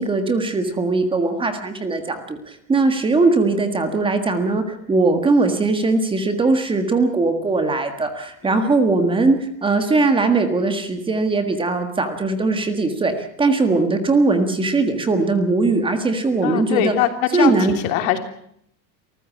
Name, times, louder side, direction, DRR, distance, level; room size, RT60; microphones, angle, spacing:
voice 1, 0.0-16.9 17.3-17.7, right 3 dB, 10° right, 8 dB, 1.6 m, -20 dB
voice 2, 16.4-18.2, left 11 dB, 80° left, 6 dB, 3.4 m, -22 dB
27.0 x 14.5 x 8.5 m, 0.71 s
cardioid pair, 170°, 41 cm